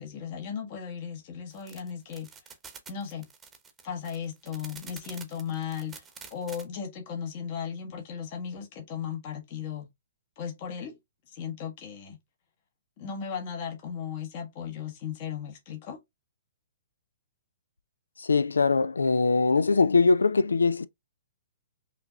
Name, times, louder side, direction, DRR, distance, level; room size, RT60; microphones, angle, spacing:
voice 1, 0.0-2.5 2.9-3.3 3.8-9.9 10.4-11.0 11.3-12.2 13.0-16.0, left 7 dB, 45° left, 1.3 m, -36 dB
sound 1, 1.5-6.6, right 6 dB, 15° right, 1.0 m, -47 dB
voice 2, 18.2-20.9, left 4 dB, 80° left, 0.3 m, -22 dB
5.6 x 2.8 x 2.4 m
figure-of-eight pair, 125°, 0 cm